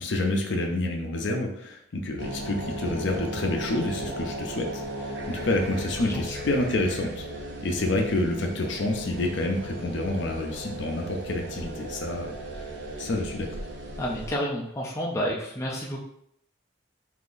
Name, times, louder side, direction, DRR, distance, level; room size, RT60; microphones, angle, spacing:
voice 1, 0.0-7.2 7.6-12.3 13.0-13.6, left 2 dB, 65° left, 2 dB, 0.5 m, -28 dB
sound 1, 2.2-14.4, right 1 dB, 60° right, 0.5 m, -36 dB
voice 2, 6.0-6.4 14.0-16.0, equal, 15° left, -3 dB, 0.4 m, -30 dB
3.7 x 2.7 x 2.5 m, 0.73 s
head